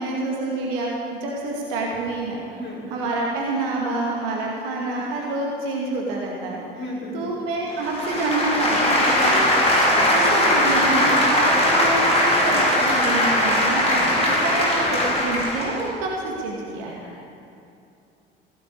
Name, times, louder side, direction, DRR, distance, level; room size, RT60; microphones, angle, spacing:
voice 1, 0.0-17.0, right 2 dB, 65° right, -2 dB, 2.3 m, -27 dB
voice 2, 2.5-2.8 6.7-7.3 9.2-9.5 17.0-17.3, left 1 dB, 40° left, -3 dB, 4.1 m, -34 dB
sound 1, 7.8-15.8, left 1 dB, 20° left, 4.8 m, -20 dB
16.5 x 9.4 x 8.7 m, 2.7 s
figure-of-eight pair, 55°, 29 cm